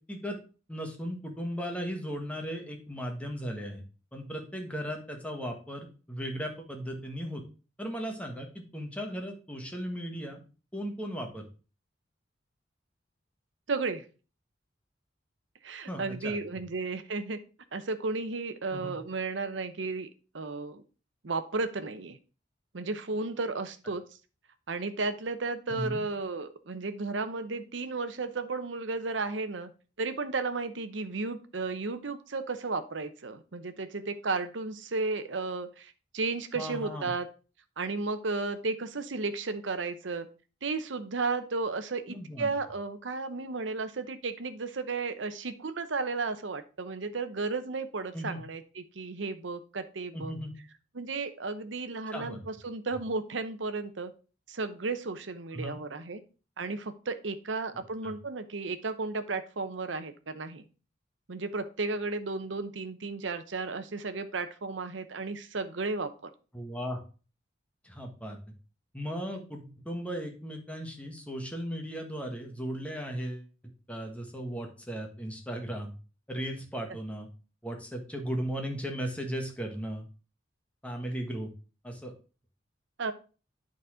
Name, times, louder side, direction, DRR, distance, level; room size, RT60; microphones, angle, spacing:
voice 1, 0.7-3.8 4.1-7.4 7.8-10.4 10.7-11.5 15.9-16.4 18.7-19.0 25.7-26.0 36.5-37.1 42.1-42.5 48.1-48.4 50.1-50.5 52.1-52.4 55.5-55.8 58.0-58.1 66.5-67.0 67.8-68.4 68.9-73.5 73.9-75.9 76.3-77.3 77.6-80.1 80.8-81.5 81.8-82.1, equal, 5° left, 3 dB, 1.4 m, -36 dB
voice 2, 13.7-14.0 15.6-17.4 17.7-20.1 20.3-20.8 21.2-22.2 22.7-24.0 24.7-29.7 30.0-37.3 37.8-40.3 40.6-50.4 50.9-54.1 54.5-56.2 56.6-60.6 61.3-66.3 83.0-83.1, right 3 dB, 80° right, 10 dB, 0.8 m, -34 dB
9.2 x 4.2 x 4.9 m, 0.35 s
head